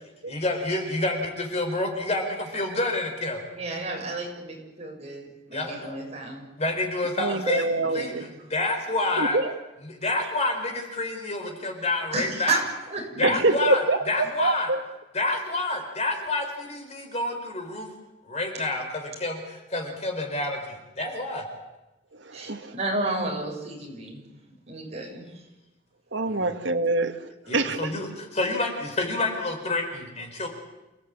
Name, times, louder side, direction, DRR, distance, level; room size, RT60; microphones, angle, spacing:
voice 1, 0.3-3.4 5.5-6.0 6.6-7.7 7.9-9.4 9.9-12.6 13.2-14.7 15.1-17.9 18.2-21.4 26.3-26.4 27.5-30.5, left 2 dB, 35° left, 4 dB, 4.6 m, -28 dB
voice 2, 3.5-6.5 7.8-8.4 12.1-12.6 12.9-13.4 22.3-24.2 24.7-25.3, right 3 dB, 35° right, 0 dB, 7.2 m, -32 dB
voice 3, 7.2-8.3 9.2-9.5 13.2-14.8 22.1-22.7 26.1-27.9, right 2 dB, 70° right, 6 dB, 1.9 m, -25 dB
29.0 x 17.5 x 8.8 m, 1.0 s
head